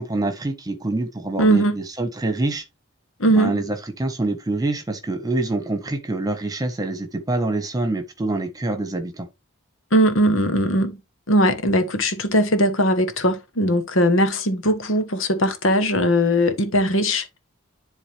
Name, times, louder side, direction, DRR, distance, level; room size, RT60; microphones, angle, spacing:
voice 1, 0.0-2.6 3.3-9.3, right 2 dB, 20° right, 1.3 m, -26 dB
voice 2, 1.4-1.7 3.2-3.5 9.9-11.0 11.3-17.4, equal, 75° left, 1.3 m, -19 dB
11.0 x 3.7 x 3.4 m
head